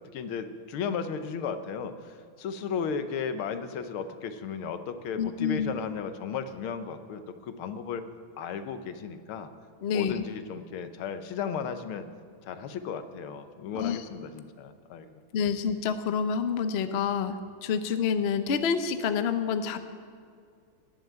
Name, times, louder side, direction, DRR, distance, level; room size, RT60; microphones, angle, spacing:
voice 1, 0.0-8.1 8.4-9.5 9.9-12.1 12.4-15.2, left 6 dB, 85° left, 10 dB, 1.8 m, -35 dB
voice 2, 5.2-5.7 9.8-10.1 13.7-14.0 15.3-17.3 17.6-19.8, left 7 dB, 70° left, 9 dB, 0.6 m, -28 dB
18.5 x 7.1 x 9.0 m, 2.2 s
omnidirectional pair, 2.3 m